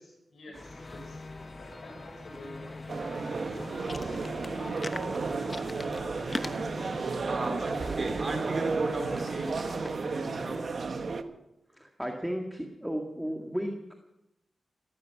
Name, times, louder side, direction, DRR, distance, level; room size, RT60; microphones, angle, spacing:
voice 1, 0.0-1.2 1.6-6.4, left 1 dB, 80° left, -1 dB, 6.3 m, -50 dB
sound 1, 0.5-10.0, left 2 dB, 30° left, 1.1 m, -43 dB
Organ, 0.6-11.2, left 3 dB, 45° left, 3.6 m, -47 dB
sound 2, 2.9-11.2, right 4 dB, 60° right, 1.1 m, -33 dB
voice 2, 7.3-9.7 10.0-11.3, right 2 dB, 40° right, 2 dB, 3.5 m, -36 dB
voice 3, 11.7-13.9, equal, 5° right, 2 dB, 2.0 m, -35 dB
17.0 x 14.0 x 6.0 m, 0.90 s
cardioid pair, 70°, 0 cm